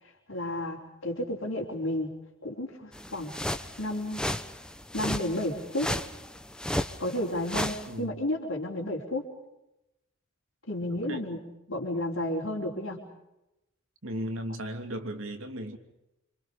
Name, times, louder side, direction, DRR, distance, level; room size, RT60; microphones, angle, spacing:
voice 1, 0.0-2.1 2.4-3.3 3.8-4.2 4.9-5.9 7.0-9.2 10.7-11.4 11.7-13.1, left 1 dB, 65° left, -3 dB, 4.2 m, -32 dB
sound 1, 2.9-7.9, left 1 dB, 5° left, 1.0 m, -34 dB
voice 2, 7.9-8.2 10.9-11.3 14.0-15.8, right 1 dB, 75° right, 5 dB, 3.0 m, -36 dB
28.5 x 27.0 x 5.2 m, 0.91 s
head